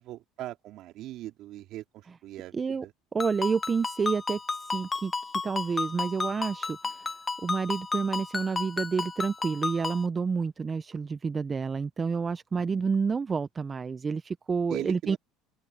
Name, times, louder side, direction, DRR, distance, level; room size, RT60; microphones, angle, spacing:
voice 1, 0.0-1.8 2.2-2.5 2.8-2.9 12.7-12.9 14.7-15.2, right 15 dB, 60° right, 3.5 m, -39 dB
voice 2, 2.5-2.9 3.1-5.1 5.4-7.1 7.4-15.2, right 5 dB, 25° right, 0.7 m, -29 dB
Ringtone, 3.2-10.1, left 4 dB, 20° left, 1.3 m, -33 dB
open air
supercardioid pair, 95°, 0 cm